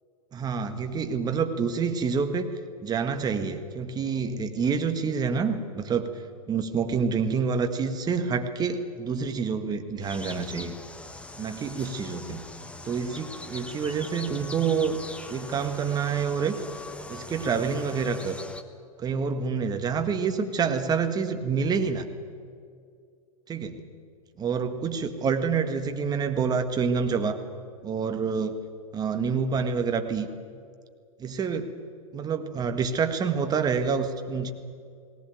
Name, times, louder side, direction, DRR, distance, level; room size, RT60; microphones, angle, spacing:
voice 1, 0.3-2.5 2.8-6.1 6.5-10.7 11.4-12.4 12.8-15.0 15.3-16.6 17.1-18.4 19.0-22.1 23.5-23.8 24.4-27.4 27.8-28.6 28.9-30.3 31.2-31.7 32.1-34.5, right 5 dB, 20° right, 7 dB, 1.6 m, -27 dB
sound 1, 10.0-18.6, left 2 dB, 5° left, 1.1 m, -41 dB
18.5 x 18.5 x 9.2 m, 2.3 s
hypercardioid pair, 105°, 19 cm